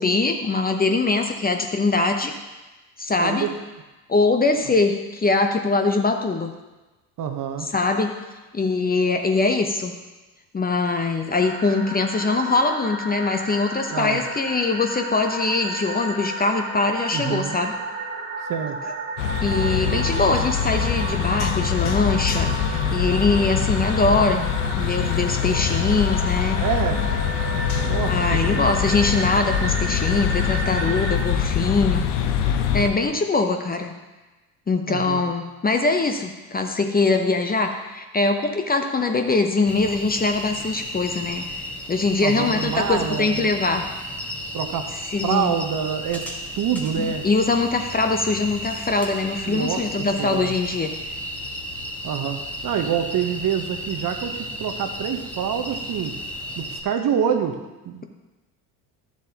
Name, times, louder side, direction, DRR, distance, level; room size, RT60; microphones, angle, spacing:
voice 1, 0.0-2.3 3.0-3.5 4.1-6.5 7.6-8.1 8.5-9.9 10.5-17.8 18.8-18.9 19.4-26.6 28.0-32.0 32.7-33.9 34.7-41.5 41.9-43.8 45.1-45.5 47.0-50.9, left 3 dB, 20° left, 5 dB, 0.8 m, -22 dB
voice 2, 7.2-7.7 13.9-14.2 17.1-17.6 18.5-18.8 19.8-20.0 26.6-27.0 27.8-28.8 34.9-35.2 42.2-43.5 44.5-44.9 45.2-46.2 46.6-47.2 49.4-50.5 52.0-56.2 56.6-57.6 57.8-58.0, right 8 dB, 45° right, 7 dB, 1.0 m, -26 dB
sound 1, 11.4-31.2, right 2 dB, 20° right, 2.0 m, -33 dB
sound 2, 19.2-32.9, left 8 dB, 70° left, 0.9 m, -24 dB
sound 3, 39.7-56.8, equal, 5° left, 1.5 m, -33 dB
11.5 x 7.2 x 2.9 m, 1.1 s
hypercardioid pair, 65°, 47 cm